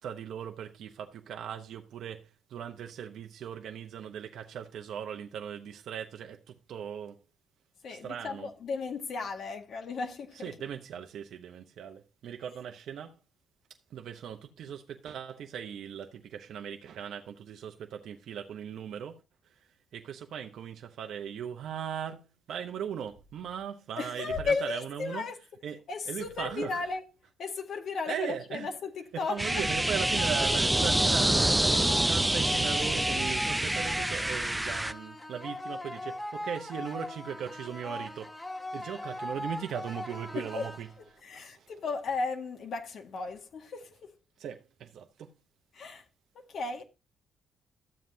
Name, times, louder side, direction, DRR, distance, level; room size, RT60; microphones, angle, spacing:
voice 1, 0.0-7.2 7.9-8.5 10.4-13.2 13.9-25.3 25.6-26.8 28.1-28.7 29.1-38.4 38.7-40.9 41.3-41.7 44.4-45.3, right 8 dB, 70° right, 0.8 m, -39 dB
voice 2, 7.8-10.5 24.0-25.4 25.9-27.0 27.4-29.7 40.3-40.7 41.2-44.1 45.7-46.1 46.3-46.8, left 4 dB, 60° left, 1.8 m, -35 dB
sound 1, 29.2-41.2, left 1 dB, 15° left, 1.7 m, -40 dB
sound 2, 29.4-34.9, right 1 dB, 10° right, 0.6 m, -27 dB
13.0 x 7.4 x 2.8 m
cardioid pair, 90°, 0 cm